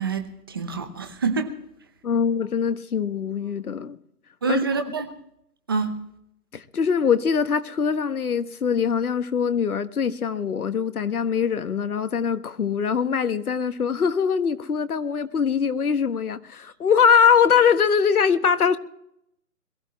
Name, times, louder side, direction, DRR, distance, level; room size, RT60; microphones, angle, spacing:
voice 1, 0.0-1.5 4.4-5.1 5.7-5.9, right 5 dB, 15° right, 0.8 m, -26 dB
voice 2, 2.0-4.0 4.5-4.6 6.5-18.8, left 7 dB, 70° left, 1.4 m, -22 dB
22.0 x 15.0 x 3.1 m
hypercardioid pair, 165°, 46 cm